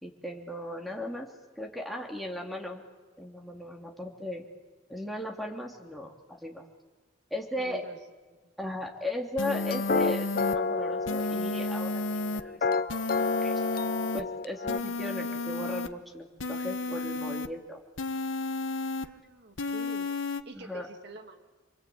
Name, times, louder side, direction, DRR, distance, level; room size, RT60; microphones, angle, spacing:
voice 1, 0.0-1.3 1.6-2.8 3.2-4.4 4.9-6.6 7.3-7.8 8.6-12.9 13.4-13.5 14.1-17.8 20.5-20.9, left 1 dB, ahead, 0 dB, 3.2 m, -37 dB
voice 2, 7.5-8.0 8.3-8.4 18.9-20.1 20.4-21.5, right 1 dB, 60° right, 5 dB, 2.6 m, -47 dB
sound 1, 9.4-10.6 11.1-12.4 12.9-14.2 14.7-15.9 16.4-17.5 18.0-19.1 19.6-20.4, left 2 dB, 75° left, 1.2 m, -32 dB
sound 2, 9.5-14.8, left 4 dB, 50° left, 0.7 m, -30 dB
28.5 x 22.5 x 8.8 m, 1.3 s
head